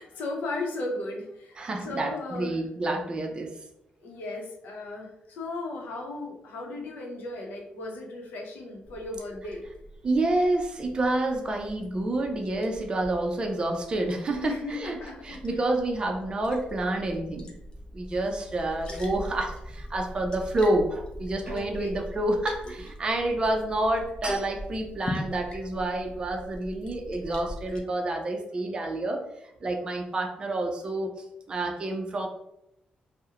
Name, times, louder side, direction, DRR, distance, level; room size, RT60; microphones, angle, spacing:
voice 1, 0.0-2.6 4.0-9.6 14.4-15.7 21.4-21.9 27.8-28.0, left 2 dB, 85° left, 0 dB, 0.6 m, -36 dB
voice 2, 1.6-3.5 10.0-15.0 15.2-17.5 17.9-29.2 29.6-31.1 31.5-32.3, right 2 dB, 30° right, 2 dB, 0.4 m, -28 dB
Liquid, 8.8-27.8, left 1 dB, 30° left, 0.5 m, -42 dB
2.4 x 2.0 x 2.8 m, 0.80 s
cardioid pair, 125°, 3 cm